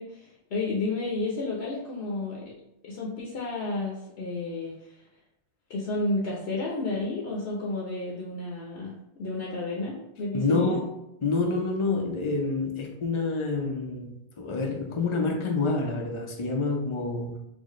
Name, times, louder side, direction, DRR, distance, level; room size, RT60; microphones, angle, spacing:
voice 1, 0.0-2.4 2.8-4.7 5.7-10.8, left 2 dB, 70° left, -4 dB, 0.9 m, -31 dB
voice 2, 10.3-10.9 11.2-17.4, left 3 dB, 40° left, 2 dB, 0.4 m, -28 dB
4.4 x 2.1 x 3.0 m, 0.84 s
omnidirectional pair, 1.1 m